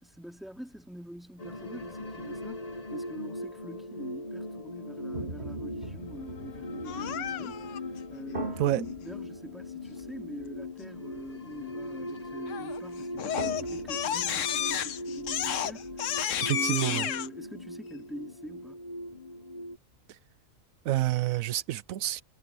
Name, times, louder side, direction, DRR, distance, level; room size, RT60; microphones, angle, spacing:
voice 1, 0.0-7.7 8.1-16.2 16.5-18.8, equal, ahead, 2.6 m, -44 dB
sound 1, 1.4-19.8, left 1 dB, 30° left, 1.1 m, -40 dB
sound 2, 5.1-11.3 11.5-11.7 12.3-12.4 12.7-12.9 13.1-16.1, right 3 dB, 50° right, 3.3 m, -43 dB
Crying sobbing, 6.9-7.8 12.5-12.8 13.2-17.3, left 9 dB, 70° left, 1.1 m, -31 dB
voice 2, 16.4-17.1 20.1-20.2 20.8-22.2, right 14 dB, 85° right, 1.0 m, -28 dB
omnidirectional pair, 1.4 m